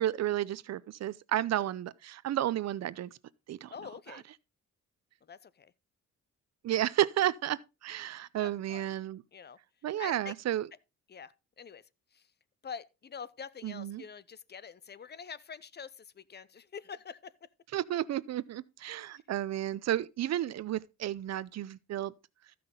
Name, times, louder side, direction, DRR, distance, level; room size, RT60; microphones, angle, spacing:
voice 1, 0.0-3.1 3.5-3.7 4.1-4.2 6.6-9.2 9.8-10.7 13.6-14.0 17.7-22.1, right 12 dB, 60° right, 0.6 m, -32 dB
voice 2, 3.7-4.2 5.3-5.7 8.4-8.9 9.3-9.6 10.0-10.4 11.1-12.3 12.6-17.5, left 6 dB, 35° left, 0.6 m, -46 dB
14.5 x 6.0 x 3.8 m
cardioid pair, 90°, 30 cm